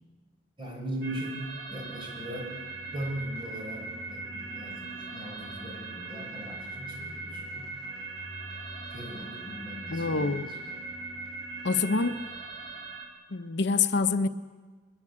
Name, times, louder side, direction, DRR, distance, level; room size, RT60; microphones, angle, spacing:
voice 1, 0.6-1.4 1.7-2.5 2.9-7.7 8.9-10.5, right 1 dB, 25° right, 0 dB, 6.6 m, -39 dB
sound 1, 1.0-13.1, right 3 dB, 75° right, 3.3 m, -40 dB
sound 2, 1.7-12.9, equal, 5° left, 7.6 m, -48 dB
voice 2, 9.9-10.5 11.6-12.2 13.3-14.3, left 4 dB, 65° left, 9 dB, 0.8 m, -26 dB
22.0 x 21.5 x 8.6 m, 1.4 s
head